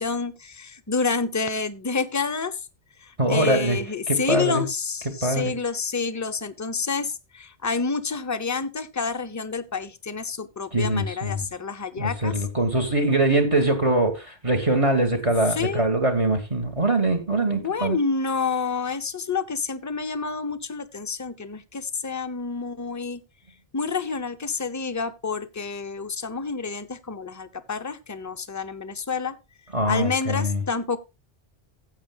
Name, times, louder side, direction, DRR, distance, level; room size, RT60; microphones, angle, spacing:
voice 1, 0.0-2.6 3.0-12.4 15.5-15.9 17.4-23.2 23.7-29.3 29.9-31.0, left 5 dB, 25° left, 0.4 m, -28 dB
voice 2, 3.2-3.8 4.1-4.7 5.2-5.5 10.7-11.5 12.0-18.0 29.7-30.6, right 1 dB, 30° right, 1.4 m, -23 dB
15.0 x 8.2 x 2.2 m
omnidirectional pair, 1.1 m